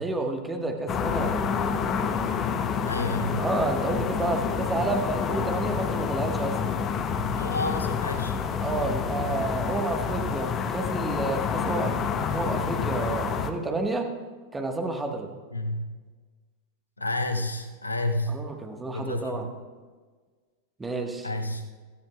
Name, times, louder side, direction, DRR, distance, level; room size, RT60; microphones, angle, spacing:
voice 1, 0.0-1.5 3.4-6.6 8.6-14.1 14.5-15.4 18.3-19.5 20.8-21.3, right 2 dB, 10° right, 3 dB, 1.4 m, -30 dB
sound 1, 0.9-13.5, left 6 dB, 30° left, 0.8 m, -28 dB
voice 2, 2.9-3.4 7.3-8.4 15.5-15.9 17.0-18.4 18.9-19.4 21.2-21.6, left 2 dB, 80° left, 6 dB, 0.9 m, -30 dB
17.0 x 14.0 x 2.4 m, 1.4 s
figure-of-eight pair, 90°, 0 cm